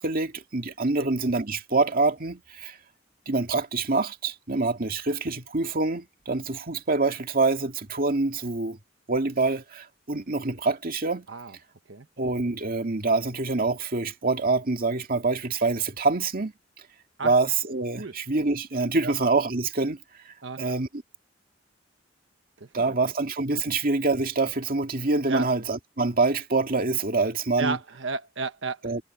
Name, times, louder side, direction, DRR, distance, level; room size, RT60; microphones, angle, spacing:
voice 1, 0.0-2.8 3.3-8.8 9.1-11.3 12.2-16.5 17.2-20.0 20.3-21.0 22.7-27.8 28.8-29.0, right 3 dB, 50° right, 2.2 m, -26 dB
voice 2, 22.6-23.0 25.3-25.5 27.6-28.8, right 4 dB, 70° right, 1.3 m, -32 dB
head